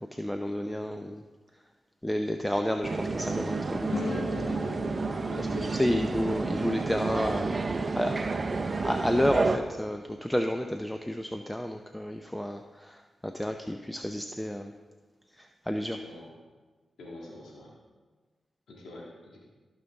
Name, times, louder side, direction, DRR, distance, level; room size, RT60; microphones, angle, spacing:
voice 1, 0.1-1.2 2.0-4.3 4.9-5.5 5.8-14.7 15.4-16.0, equal, 10° left, 5 dB, 0.5 m, -31 dB
sound 1, 2.8-9.6, right 3 dB, 45° right, 0.6 m, -30 dB
sound 2, 3.9-9.1, left 3 dB, 70° left, 0.9 m, -40 dB
voice 2, 5.3-6.1 16.0-16.3 17.0-17.7 18.7-19.4, left 2 dB, 85° left, -4 dB, 1.8 m, -45 dB
15.0 x 5.4 x 3.5 m, 1.3 s
supercardioid pair, 45°, 0 cm